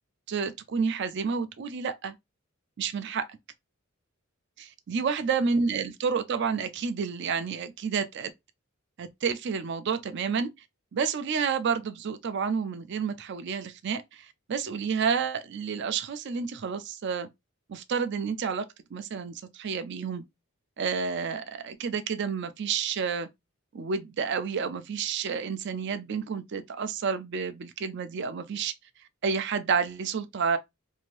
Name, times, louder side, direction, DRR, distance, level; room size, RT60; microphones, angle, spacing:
voice 1, 0.3-2.2 2.8-3.3 4.6-8.3 9.0-10.5 10.9-17.3 17.7-18.6 18.9-20.2 20.8-23.3 23.7-28.7 29.2-30.6, right 6 dB, 55° right, 0.4 m, -30 dB
2.7 x 2.5 x 3.1 m
head